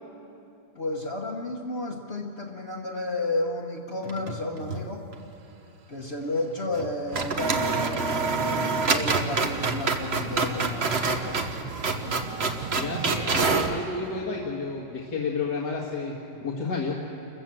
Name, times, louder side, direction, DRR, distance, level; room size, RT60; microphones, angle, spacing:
voice 1, 0.7-5.1 5.9-11.5 12.0-12.2, left 2 dB, 40° left, -1 dB, 1.4 m, -32 dB
sound 1, 4.0-4.9 5.1-5.2 6.7-6.9 7.1-13.8, right 4 dB, 40° right, 1.3 m, -27 dB
sound 2, 7.1-13.8, right 9 dB, 75° right, 1.2 m, -39 dB
voice 2, 12.7-17.0, left 3 dB, 80° left, -2 dB, 2.3 m, -31 dB
28.5 x 15.0 x 7.6 m, 2.8 s
omnidirectional pair, 1.8 m